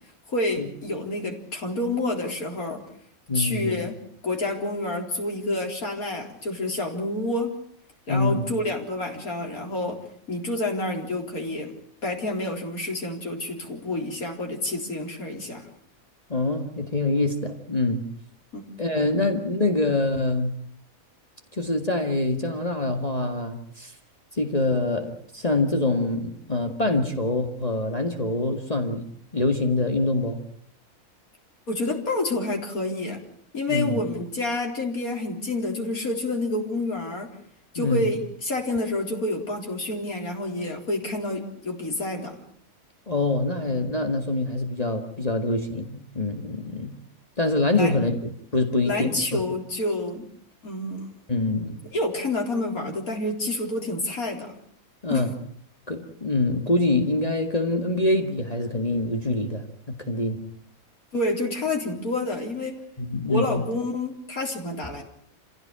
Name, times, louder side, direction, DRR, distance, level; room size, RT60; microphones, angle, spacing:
voice 1, 0.3-2.8 3.3-3.9 4.2-7.5 8.1-10.0 10.3-11.7 12.0-15.7 18.5-18.6 31.7-33.2 33.5-37.3 37.7-42.4 47.8-47.9 48.8-50.3 50.6-51.1 51.9-54.6 55.1-55.3 61.1-62.8 63.3-65.0, left 2 dB, 85° left, 2 dB, 4.5 m, -28 dB
voice 2, 3.3-3.8 8.1-8.5 16.3-18.0 18.8-20.5 21.5-23.9 24.3-29.1 29.3-30.4 33.7-34.0 37.8-38.1 43.1-46.9 47.4-48.1 48.5-49.4 51.3-51.8 55.0-55.3 55.9-60.4 63.0-63.6, left 2 dB, 25° left, 4 dB, 2.0 m, -25 dB
28.0 x 16.5 x 8.8 m, 0.62 s
omnidirectional pair, 1.5 m